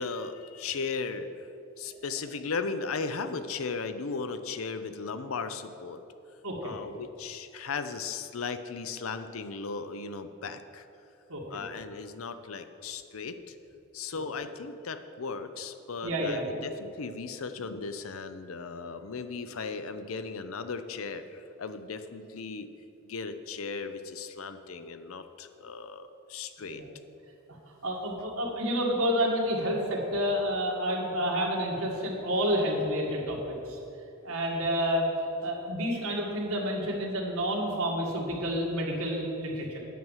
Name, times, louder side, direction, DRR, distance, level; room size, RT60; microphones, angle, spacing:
voice 1, 0.0-1.5 1.8-6.0 6.6-10.9 11.5-13.6 13.9-22.7 23.0-26.8, left 4 dB, 75° left, 10 dB, 0.6 m, -36 dB
voice 2, 11.3-11.6 14.1-14.2 16.0-16.5 26.7-26.9 27.8-33.8 34.2-35.1 35.4-39.8, equal, 90° right, -2 dB, 2.0 m, -29 dB
9.3 x 6.1 x 7.3 m, 2.8 s
head